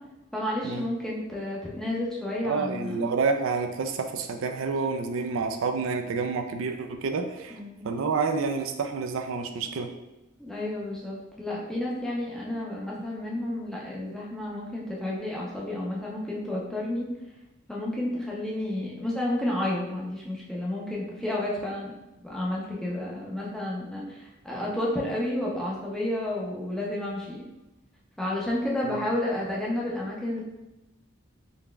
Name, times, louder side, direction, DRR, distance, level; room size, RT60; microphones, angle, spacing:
voice 1, 0.3-3.0 7.5-7.9 10.4-17.1 17.7-21.9 22.2-27.4 28.2-30.4, left 1 dB, ahead, -5 dB, 0.5 m, -31 dB
voice 2, 2.4-7.6 7.8-9.9 28.8-29.0, right 4 dB, 70° right, 5 dB, 0.4 m, -29 dB
3.9 x 3.4 x 2.2 m, 0.99 s
head